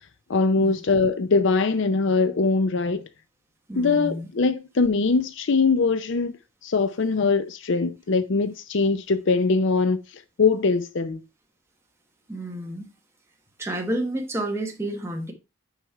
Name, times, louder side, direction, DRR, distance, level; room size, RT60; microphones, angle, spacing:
voice 1, 0.3-3.1 3.8-6.4 6.6-11.2, left 4 dB, 55° left, 0.5 m, -22 dB
voice 2, 3.7-4.3 12.3-12.9 13.6-15.3, right 1 dB, 10° right, 1.2 m, -30 dB
6.2 x 5.1 x 4.4 m
head